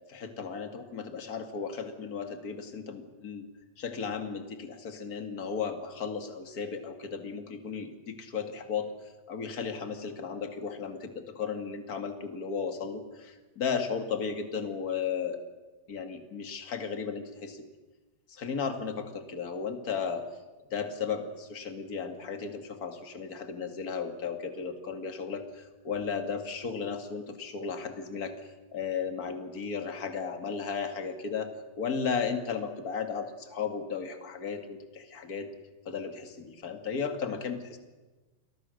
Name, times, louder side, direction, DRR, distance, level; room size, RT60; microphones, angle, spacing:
voice 1, 0.1-3.4 3.8-8.9 9.3-15.4 15.9-17.6 18.3-20.2 20.7-28.3 28.7-31.5 31.8-35.5 35.9-37.8, left 6 dB, 30° left, 6 dB, 1.8 m, -35 dB
29.5 x 22.0 x 6.5 m, 1.2 s
omnidirectional pair, 4.3 m